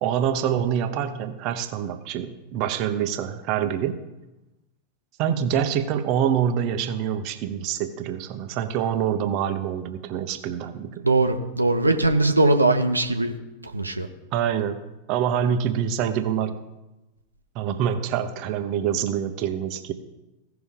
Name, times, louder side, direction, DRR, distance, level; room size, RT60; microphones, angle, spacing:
voice 1, 0.0-4.0 5.2-11.1 14.3-14.8 15.1-16.6 17.5-19.9, right 9 dB, 40° right, 8 dB, 0.9 m, -26 dB
voice 2, 11.0-13.3 13.6-14.1, right 2 dB, 85° right, 5 dB, 0.8 m, -20 dB
16.5 x 5.8 x 3.7 m, 1.0 s
figure-of-eight pair, 90°, 0 cm